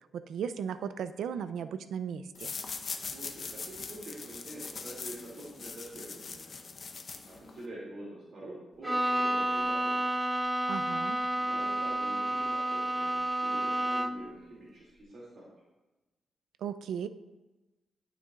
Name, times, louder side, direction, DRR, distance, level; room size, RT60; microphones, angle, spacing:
voice 1, 0.1-2.5 10.7-11.2 16.6-17.1, right 7 dB, 85° right, 12 dB, 0.4 m, -36 dB
sound 1, 2.3-7.7, left 4 dB, 45° left, 0.8 m, -41 dB
voice 2, 3.1-6.5 7.3-10.2 11.4-15.5, right 1 dB, 60° right, -7 dB, 2.5 m, -46 dB
Bowed string instrument, 8.8-14.4, right 1 dB, 10° right, 0.5 m, -30 dB
12.0 x 6.8 x 2.4 m, 1.1 s
cardioid pair, 115°, 0 cm